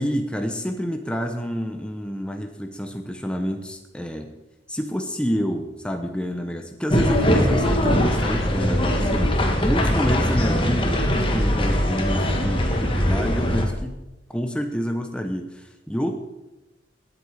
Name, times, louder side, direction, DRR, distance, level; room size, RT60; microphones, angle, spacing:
voice 1, 0.0-4.3 4.7-14.0 14.3-16.1, equal, 5° left, 4 dB, 0.8 m, -28 dB
sound 1, 6.9-13.7, equal, 25° left, 1.5 m, -21 dB
18.5 x 8.1 x 4.9 m, 1.0 s
head